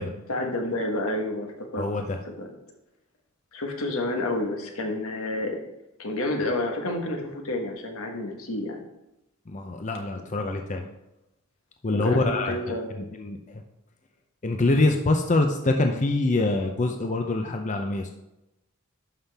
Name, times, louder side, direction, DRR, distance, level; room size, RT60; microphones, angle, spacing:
voice 1, 0.3-1.9 2.4-2.5 3.5-5.6 6.0-8.8 11.9-12.9, left 1 dB, 80° left, 3 dB, 1.4 m, -29 dB
voice 2, 1.8-2.2 9.5-10.9 11.8-13.6 14.4-18.1, left 2 dB, 35° left, 4 dB, 0.6 m, -25 dB
11.5 x 5.7 x 3.5 m, 0.92 s
head